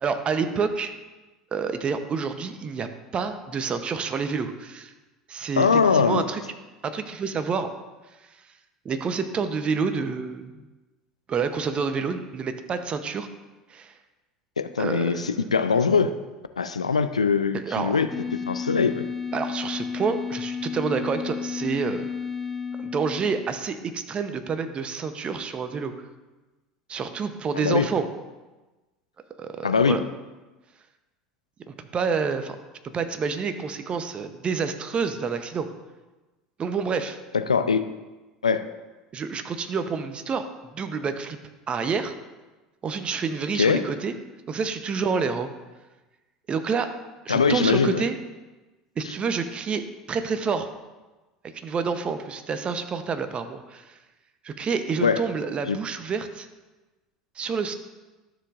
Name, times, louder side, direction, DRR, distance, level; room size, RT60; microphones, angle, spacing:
voice 1, 0.0-0.9 1.5-4.9 5.3-6.4 6.8-7.7 8.8-10.5 11.3-13.3 13.7-13.9 14.8-15.2 17.5-18.0 19.3-22.1 22.8-25.9 26.9-28.1 29.4-30.0 31.7-32.6 32.9-35.7 36.6-37.2 39.1-40.5 40.7-41.4 41.7-42.1 42.8-44.1 44.5-45.5 46.5-46.9 47.2-48.1 49.0-50.7 51.6-53.8 54.4-56.5 57.4-57.7, right 5 dB, 30° right, 9 dB, 0.8 m, -28 dB
voice 2, 5.6-6.2 14.6-16.1 16.6-18.1 18.5-19.0 27.5-27.9 29.6-30.0 37.3-37.8 38.4-38.6 43.5-43.8 47.3-48.0 55.0-55.2 55.7-55.8, left 5 dB, 90° left, 10 dB, 0.4 m, -22 dB
sound 1, 18.1-23.6, left 6 dB, ahead, 0.8 m, -32 dB
12.5 x 6.8 x 2.5 m, 1.2 s
hypercardioid pair, 75°, 3 cm